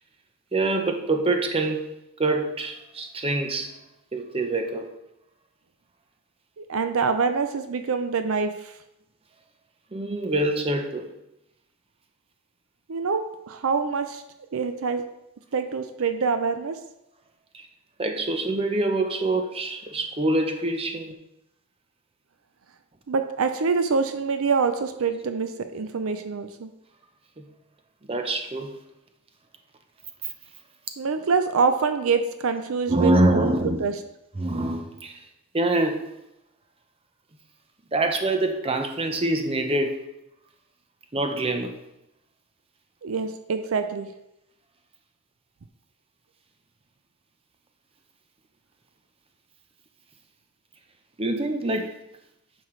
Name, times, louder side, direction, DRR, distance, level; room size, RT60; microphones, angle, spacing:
voice 1, 0.5-1.9 2.2-3.8 4.1-4.9 9.9-11.1 17.5-17.7 18.0-21.1 27.4-27.5 28.1-28.8 32.9-33.8 34.4-35.2 35.5-36.1 37.9-40.1 41.1-41.8 51.2-52.0, right 2 dB, 25° right, 5 dB, 0.8 m, -25 dB
voice 2, 6.6-8.7 12.9-14.2 14.5-15.0 15.5-16.8 23.1-26.7 31.0-33.9 43.0-44.1, right 5 dB, 70° right, 8 dB, 0.5 m, -25 dB
9.5 x 6.4 x 3.2 m, 0.87 s
head